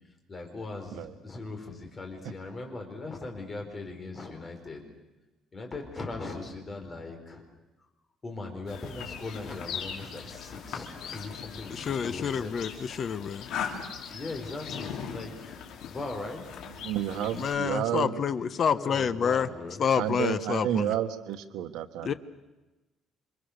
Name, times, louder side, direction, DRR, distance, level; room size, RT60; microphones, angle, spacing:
voice 1, 0.3-4.8 5.5-7.5 8.2-12.6 14.1-16.4 17.9-19.8, left 3 dB, 20° left, 3 dB, 4.8 m, -39 dB
sound 1, 8.7-17.5, left 7 dB, 70° left, 3.5 m, -40 dB
voice 2, 11.7-13.5 17.3-19.5 19.8-20.9 22.0-22.1, left 7 dB, 40° left, 13 dB, 1.0 m, -28 dB
voice 3, 16.8-18.2 19.9-22.1, right 11 dB, 90° right, 9 dB, 1.4 m, -30 dB
28.0 x 26.0 x 6.7 m, 1.0 s
cardioid pair, 160°, 0 cm